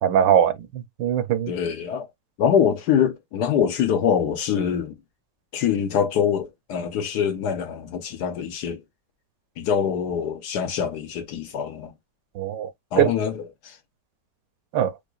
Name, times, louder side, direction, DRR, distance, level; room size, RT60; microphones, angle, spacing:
voice 1, 0.0-1.5 12.4-12.7 13.0-13.1 14.7-14.9, right 9 dB, 80° right, 1.3 m, -21 dB
voice 2, 1.5-2.1 2.4-4.9 5.5-8.8 9.6-11.9 12.9-13.8, left 8 dB, 70° left, 1.2 m, -24 dB
4.8 x 2.3 x 2.3 m
omnidirectional pair, 2.0 m